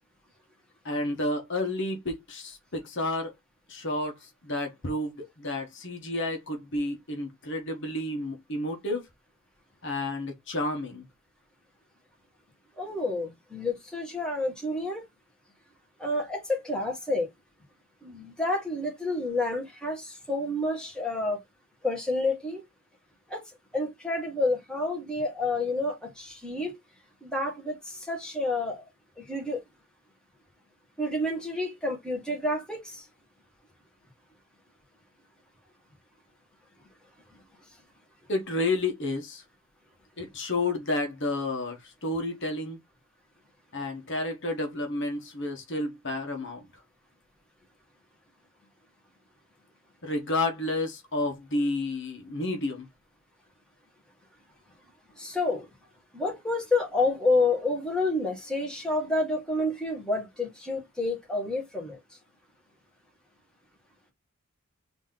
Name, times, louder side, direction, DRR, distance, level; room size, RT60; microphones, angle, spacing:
voice 1, 0.8-3.3 3.7-9.1 9.8-11.1 38.3-39.4 40.2-42.8 43.7-46.7 50.0-52.9, left 2 dB, 60° left, 1.3 m, -31 dB
voice 2, 12.8-15.0 16.0-17.3 18.0-21.4 21.8-22.6 23.3-23.4 23.7-26.8 27.2-28.8 29.2-29.6 31.0-33.0 55.2-55.7 56.1-62.0, left 2 dB, 5° left, 1.8 m, -29 dB
4.2 x 3.0 x 3.7 m
head